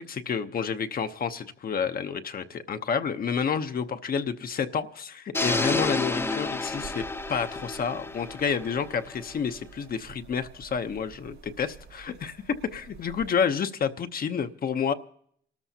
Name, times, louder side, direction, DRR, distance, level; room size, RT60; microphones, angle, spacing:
voice 1, 0.0-7.0 7.3-14.9, left 6 dB, 50° left, 0.8 m, -29 dB
sound 1, 5.3-9.4, left 2 dB, 10° left, 0.6 m, -30 dB
sound 2, 6.1-13.3, right 6 dB, 80° right, 4.7 m, -50 dB
28.0 x 13.5 x 2.8 m
cardioid pair, 90°, 20 cm